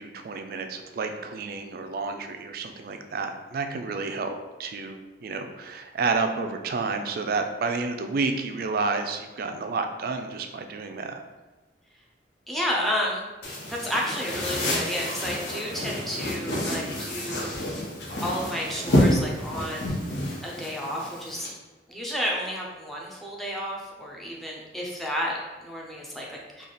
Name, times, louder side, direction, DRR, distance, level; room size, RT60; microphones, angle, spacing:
voice 1, 0.0-4.3 4.6-11.2, right 4 dB, 55° right, 6 dB, 0.3 m, -30 dB
voice 2, 12.5-13.3 13.7-17.5 18.2-20.0 20.4-21.5 21.9-26.7, equal, ahead, -3 dB, 0.5 m, -31 dB
sound 1, 13.4-21.5, left 1 dB, 65° left, 0.9 m, -28 dB
3.3 x 2.3 x 3.8 m, 1.2 s
head